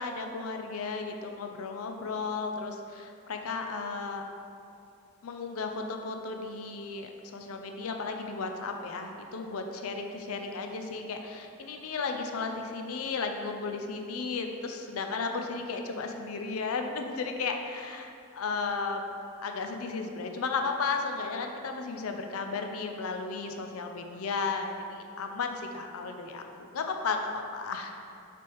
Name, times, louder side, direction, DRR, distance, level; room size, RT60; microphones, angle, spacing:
voice 1, 0.0-4.2 5.2-19.0 19.4-27.9, left 4 dB, 90° left, 4 dB, 0.5 m, -34 dB
6.0 x 3.4 x 4.6 m, 2.6 s
head